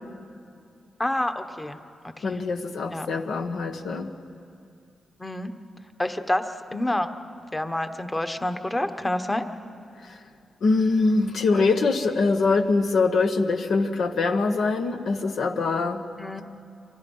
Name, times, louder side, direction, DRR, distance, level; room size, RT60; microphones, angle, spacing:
voice 1, 1.0-1.8 2.2-2.4 2.9-3.1 5.2-5.5 6.0-6.4 6.7-7.1 7.5-9.4 11.5-11.6 16.2-16.4, left 1 dB, 15° left, 8 dB, 1.2 m, -28 dB
voice 2, 2.2-4.1 10.0-10.2 10.6-16.0, left 3 dB, 75° left, 6 dB, 1.5 m, -23 dB
29.5 x 24.5 x 5.6 m, 2.5 s
cardioid pair, 105°, 0 cm